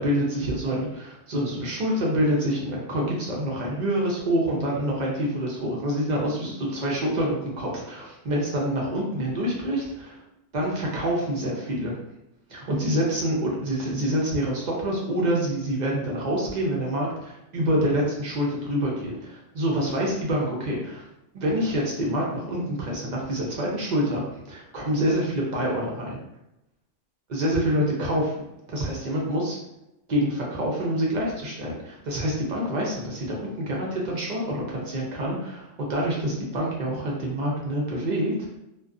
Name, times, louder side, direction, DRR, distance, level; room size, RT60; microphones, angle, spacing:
voice 1, 0.0-10.2 10.5-12.0 12.5-21.0 21.3-26.2 27.3-28.4 28.7-29.6 30.1-38.3, equal, 50° right, -3 dB, 0.6 m, -26 dB
2.4 x 2.3 x 2.4 m, 0.89 s
omnidirectional pair, 1.3 m